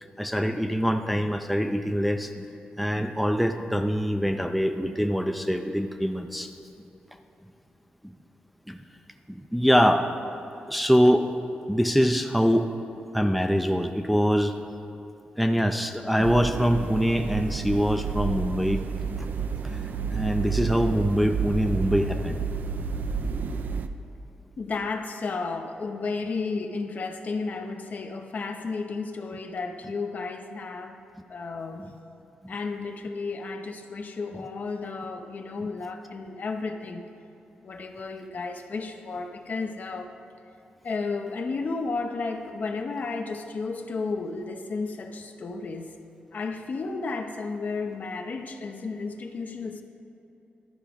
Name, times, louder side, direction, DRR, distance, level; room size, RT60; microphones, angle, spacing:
voice 1, 0.2-2.5 2.8-6.5 8.0-8.1 8.7-8.8 9.3-10.1 10.7-11.3 11.7-12.7 13.1-14.5 15.4-18.9 19.4-22.4 32.4-32.5 35.6-35.7, equal, ahead, 5 dB, 0.4 m, -24 dB
sound 1, 16.2-23.9, right 5 dB, 65° right, 0.4 m, -30 dB
voice 2, 24.6-31.0 31.3-31.8 32.5-37.1 37.6-40.1 40.8-45.9 46.3-49.8, left 4 dB, 55° left, 5 dB, 0.7 m, -33 dB
12.0 x 4.8 x 5.1 m, 2.9 s
cardioid pair, 100°, 3 cm